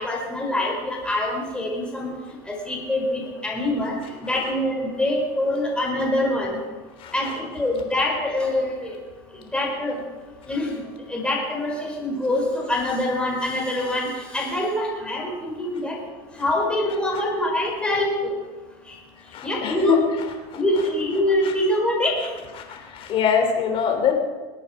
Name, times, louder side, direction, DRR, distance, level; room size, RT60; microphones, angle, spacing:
voice 1, 0.0-2.1 2.5-4.0 4.2-6.6 7.1-8.9 9.5-10.0 10.5-10.8 11.1-14.1 14.3-16.0 16.4-18.3 19.4-20.0 20.6-22.3, left 1 dB, 10° left, -1 dB, 4.6 m, -24 dB
voice 2, 7.0-7.3 17.1-17.2 19.3-20.0 20.5-20.8 21.4-21.5 22.7-24.1, left 7 dB, 45° left, 4 dB, 3.4 m, -24 dB
21.5 x 8.8 x 5.1 m, 1.3 s
supercardioid pair, 120°, 12 cm